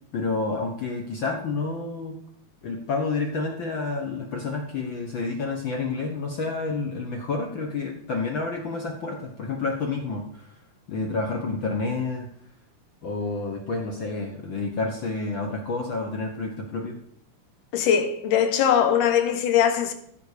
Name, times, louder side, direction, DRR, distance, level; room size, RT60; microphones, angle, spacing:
voice 1, 0.1-2.2 2.6-10.5 10.9-12.3 13.0-17.0, left 3 dB, 65° left, 1.2 m, -29 dB
voice 2, 17.7-19.9, left 8 dB, 85° left, 2.7 m, -21 dB
14.5 x 5.7 x 4.9 m
omnidirectional pair, 3.6 m